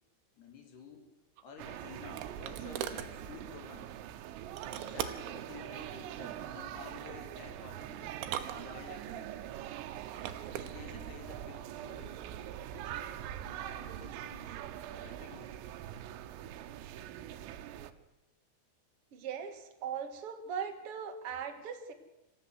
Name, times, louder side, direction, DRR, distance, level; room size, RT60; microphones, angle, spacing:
voice 1, 0.4-1.1 1.4-4.0 4.6-8.2 8.5-9.5 10.5-12.2 12.7-14.6 14.9-15.6, left 5 dB, 60° left, 5 dB, 4.3 m, -52 dB
sound 1, 1.4-3.1 4.6-5.4 6.7-7.2 8.1-9.1 10.0-10.7, right 10 dB, 75° right, 3.4 m, -41 dB
sound 2, 1.6-17.9, right 11 dB, 90° right, 3.7 m, -43 dB
voice 2, 19.1-21.9, right 7 dB, 50° right, 6 dB, 1.7 m, -39 dB
27.0 x 15.0 x 8.0 m, 0.97 s
omnidirectional pair, 5.7 m